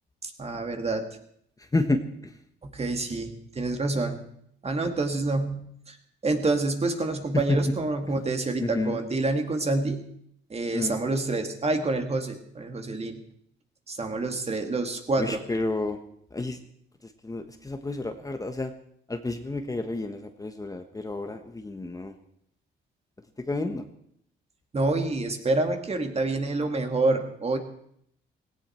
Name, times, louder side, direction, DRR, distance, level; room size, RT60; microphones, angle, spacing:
voice 1, 0.2-1.0 2.6-4.2 4.6-5.6 5.9-6.0 6.2-10.0 10.5-13.2 13.9-15.4 24.7-27.6, right 2 dB, 30° right, 5 dB, 2.3 m, -27 dB
voice 2, 1.7-2.3 7.3-7.6 8.6-9.0 10.7-11.0 15.2-16.0 16.3-16.6 17.2-18.7 19.1-22.1 23.5-23.8, left 2 dB, 15° left, 7 dB, 1.2 m, -30 dB
17.0 x 17.0 x 4.5 m, 0.71 s
cardioid pair, 90°, 20 cm